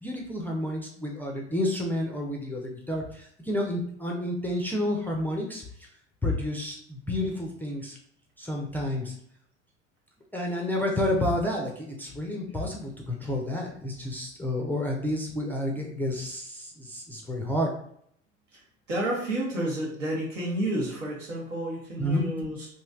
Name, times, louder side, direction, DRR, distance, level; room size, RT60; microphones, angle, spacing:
voice 1, 0.0-5.6 6.2-8.0 8.4-9.2 10.3-17.7 22.0-22.3, left 1 dB, 5° left, -1 dB, 0.4 m, -30 dB
voice 2, 18.9-22.7, right 1 dB, 80° right, -3 dB, 1.0 m, -30 dB
3.0 x 2.6 x 2.4 m, 0.66 s
figure-of-eight pair, 70°, 37 cm